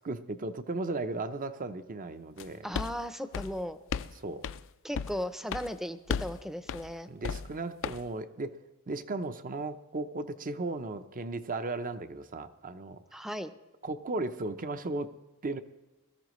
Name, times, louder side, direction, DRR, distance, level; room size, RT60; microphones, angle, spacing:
voice 1, 0.0-2.6 4.2-4.4 7.1-8.6 8.9-13.0 13.8-15.1 15.4-15.6, right 2 dB, 40° right, 10 dB, 0.7 m, -36 dB
sound 1, 2.4-2.5 2.7-3.0 3.3-4.1 4.4-4.6 4.9-5.2 5.5-5.7 6.1-6.4 6.7-6.9 7.2-7.5 7.8-8.0, left 6 dB, 60° left, 0.4 m, -34 dB
voice 2, 2.6-3.8 4.8-7.1 13.1-13.5, equal, ahead, 10 dB, 0.6 m, -36 dB
21.5 x 14.0 x 3.1 m, 1.1 s
head